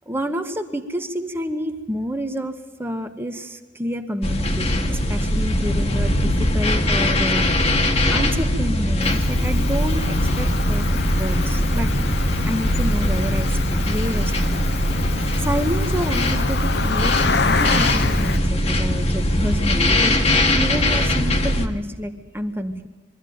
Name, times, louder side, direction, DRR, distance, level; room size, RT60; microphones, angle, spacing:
voice 1, 0.1-7.5 8.1-10.9 11.2-11.9 12.4-14.9 15.4-22.9, equal, 10° right, 7 dB, 1.1 m, -28 dB
sound 1, 4.2-21.7, left 1 dB, 35° left, 1.4 m, -21 dB
Cricket, 9.0-18.4, left 5 dB, 60° left, 0.9 m, -28 dB
22.5 x 13.5 x 9.4 m, 1.2 s
head